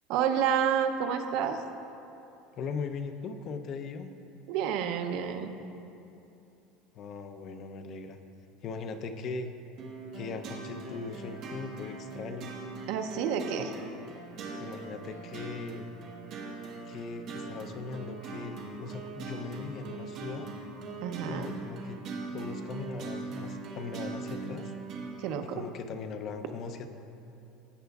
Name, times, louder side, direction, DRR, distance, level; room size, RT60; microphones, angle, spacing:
voice 1, 0.1-1.6 4.5-5.5 12.9-13.7 21.0-21.5 25.2-25.6, right 8 dB, 55° right, 6 dB, 0.6 m, -29 dB
voice 2, 2.6-4.1 6.9-8.2 8.6-9.5 10.1-12.5 14.6-15.9 16.9-20.5 21.2-22.0 22.3-24.7 25.4-26.9, left 5 dB, 35° left, 8 dB, 0.5 m, -39 dB
sound 1, 9.8-25.2, right 3 dB, 40° right, 1.3 m, -41 dB
17.0 x 7.9 x 2.3 m, 2.8 s
cardioid pair, 165°, 0 cm